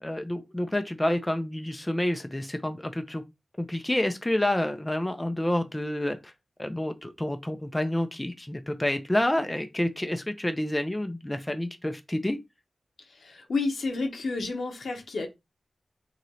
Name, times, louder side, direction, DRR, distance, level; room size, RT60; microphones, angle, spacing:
voice 1, 0.0-3.2 3.6-6.3 6.6-12.4, left 1 dB, 15° left, 0.4 m, -28 dB
voice 2, 13.1-15.3, left 3 dB, 85° left, 0.9 m, -30 dB
3.1 x 2.8 x 3.9 m
wide cardioid pair, 115°, 0 cm